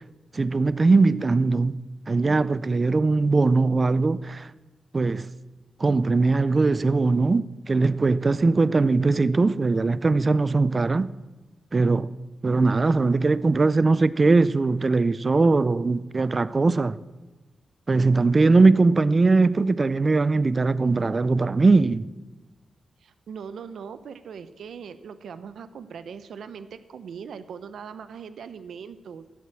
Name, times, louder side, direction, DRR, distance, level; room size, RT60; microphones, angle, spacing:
voice 1, 0.3-1.8 2.1-4.5 4.9-5.3 5.8-11.1 11.7-12.1 12.4-17.0 17.9-22.1, right 3 dB, 30° right, 0.4 m, -20 dB
voice 2, 23.0-29.3, right 6 dB, 85° right, 0.8 m, -40 dB
15.5 x 8.3 x 7.5 m
wide cardioid pair, 145°, 0 cm